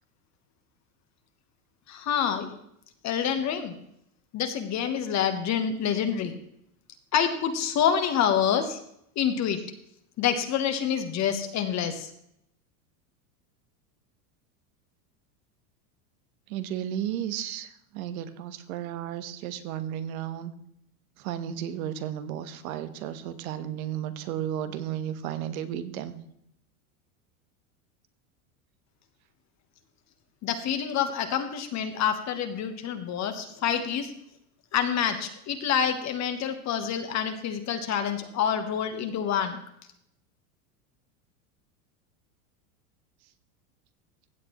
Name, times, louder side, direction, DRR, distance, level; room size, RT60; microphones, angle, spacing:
voice 1, 1.9-2.5 3.0-3.7 4.3-6.4 7.1-8.8 9.2-9.6 10.2-12.1 30.4-34.1 34.7-39.6, left 8 dB, 40° left, 7 dB, 1.2 m, -27 dB
voice 2, 16.5-20.5 21.2-26.2, right 10 dB, 70° right, 11 dB, 1.3 m, -33 dB
15.5 x 7.9 x 3.0 m, 0.75 s
supercardioid pair, 115°, 44 cm